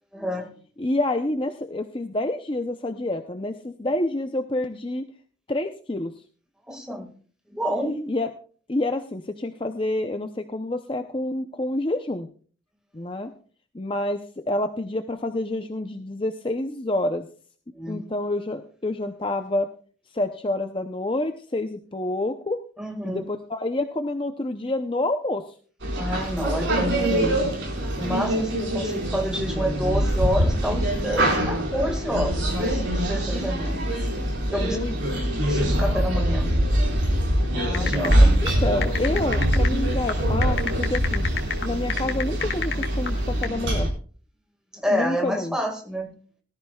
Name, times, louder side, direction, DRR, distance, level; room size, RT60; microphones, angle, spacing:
voice 1, 0.1-0.6 6.7-7.1 7.5-8.1 17.7-18.1 22.8-23.3 25.9-27.5 28.0-33.8 34.5-34.8 35.4-36.6 37.7-38.4 44.8-46.1, equal, 5° right, 4 dB, 1.8 m, -29 dB
voice 2, 0.8-5.0 5.5-6.1 8.1-8.3 8.7-12.3 12.9-13.3 13.7-17.3 17.9-19.7 20.1-22.6 23.0-25.4 34.5-35.0 37.5-38.0 38.4-41.2 41.6-43.9 44.9-45.6, left 1 dB, 25° left, 6 dB, 0.6 m, -28 dB
sound 1, 25.8-43.9, right 1 dB, 75° right, 4.6 m, -24 dB
sound 2, 37.7-43.5, left 6 dB, 60° left, 1.9 m, -30 dB
18.0 x 13.5 x 2.3 m, 0.42 s
head